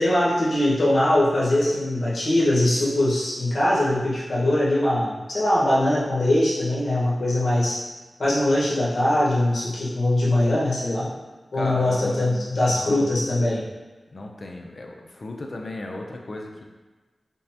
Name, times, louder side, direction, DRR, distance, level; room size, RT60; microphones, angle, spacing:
voice 1, 0.0-7.8 8.2-11.1 11.5-13.6, left 1 dB, 70° left, -7 dB, 1.2 m, -21 dB
voice 2, 11.5-13.2 14.1-16.6, left 2 dB, 55° left, 1 dB, 0.5 m, -36 dB
5.3 x 2.1 x 2.8 m, 1.3 s
wide cardioid pair, 75°, 0 cm